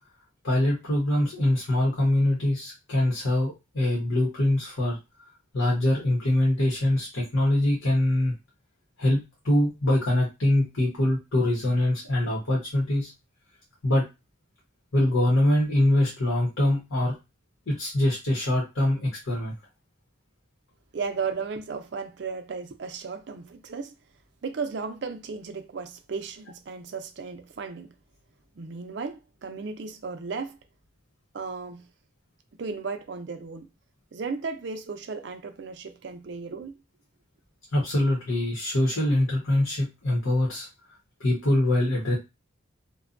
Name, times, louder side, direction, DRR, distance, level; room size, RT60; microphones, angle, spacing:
voice 1, 0.4-5.0 5.5-8.3 9.0-13.1 13.8-14.0 14.9-17.1 17.7-19.5 37.7-40.7 41.2-42.2, left 1 dB, 85° left, 0.9 m, -24 dB
voice 2, 20.9-23.9 24.4-27.9 28.6-30.6 31.3-31.9 32.5-33.7 34.1-36.8, right 5 dB, 60° right, 0.4 m, -35 dB
2.6 x 2.2 x 2.5 m
head